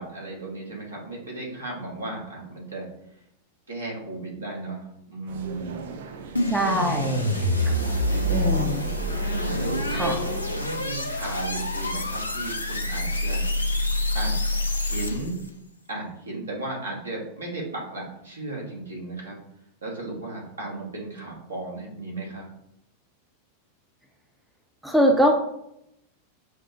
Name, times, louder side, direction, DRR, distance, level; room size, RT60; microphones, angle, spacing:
voice 1, 0.0-2.9 3.7-5.9 6.9-7.0 7.5-8.5 9.2-9.8 10.5-13.6 14.1-15.4 15.9-19.4 19.8-22.4, right 2 dB, 75° right, -2 dB, 1.2 m, -35 dB
sound 1, 5.3-10.6, right 4 dB, 55° right, 0.5 m, -35 dB
sound 2, 6.3-15.4, left 1 dB, 80° left, 0.4 m, -27 dB
voice 2, 6.5-7.2 7.6-7.7 8.3-8.9 9.9-10.2 24.8-25.3, equal, 5° right, 1 dB, 0.5 m, -22 dB
5.6 x 2.0 x 2.7 m, 0.78 s
figure-of-eight pair, 90°, 0 cm